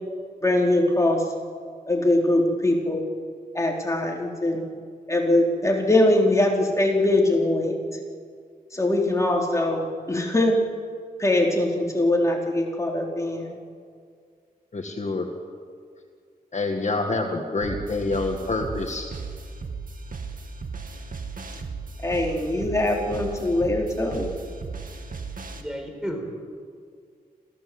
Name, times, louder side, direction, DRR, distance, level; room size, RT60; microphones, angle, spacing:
voice 1, 0.4-1.2 1.9-3.0 3.5-4.6 5.1-7.8 8.7-10.6 11.2-13.6 22.0-24.4, left 1 dB, 20° left, 0 dB, 4.0 m, -22 dB
voice 2, 14.7-15.3 16.5-19.1, left 3 dB, 50° left, 3 dB, 1.9 m, -27 dB
sound 1, 17.6-25.6, right 4 dB, 60° right, 2.2 m, -36 dB
voice 3, 25.6-26.3, equal, 5° right, 3 dB, 5.1 m, -32 dB
27.0 x 16.0 x 7.9 m, 2.1 s
wide cardioid pair, 90°, 16 cm